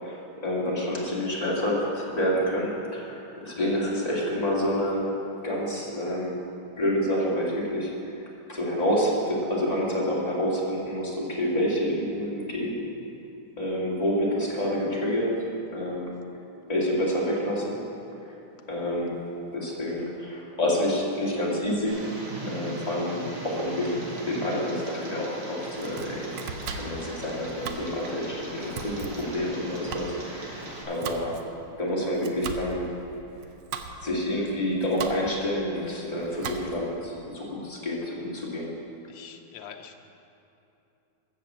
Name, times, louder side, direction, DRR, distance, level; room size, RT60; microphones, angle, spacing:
voice 1, 0.0-5.1 5.4-6.4 6.8-8.2 8.5-12.8 13.6-15.4 15.7-16.2 16.7-17.8 18.3-18.4 18.7-19.2 19.5-22.1 22.5-26.3 26.7-31.4 31.8-32.9 34.0-38.7, equal, 20° left, -5 dB, 2.3 m, -28 dB
Tick, 21.9-30.8, right 2 dB, 80° right, 2.7 m, -39 dB
Domestic sounds home sounds, 25.6-37.0, right 6 dB, 65° right, 1.2 m, -40 dB
voice 2, 39.1-40.0, left 8 dB, 70° left, 4 dB, 1.5 m, -44 dB
14.0 x 6.7 x 7.4 m, 2.8 s
omnidirectional pair, 2.3 m